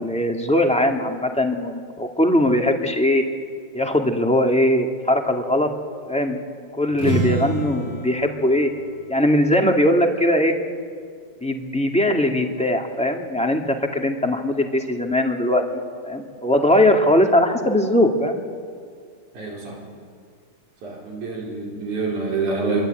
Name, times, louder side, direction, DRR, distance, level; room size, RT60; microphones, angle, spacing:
voice 1, 0.0-3.2 3.7-5.7 6.1-6.4 6.8-8.7 9.1-10.6 11.4-13.6 13.9-15.6 16.0-18.4, left 1 dB, 5° left, 2 dB, 1.7 m, -20 dB
sound 1, 6.9-10.6, right 2 dB, 55° right, 5.2 m, -29 dB
voice 2, 19.3-19.8 20.8-22.9, right 3 dB, 85° right, -1 dB, 6.1 m, -26 dB
26.5 x 23.5 x 9.2 m, 2.1 s
omnidirectional pair, 3.4 m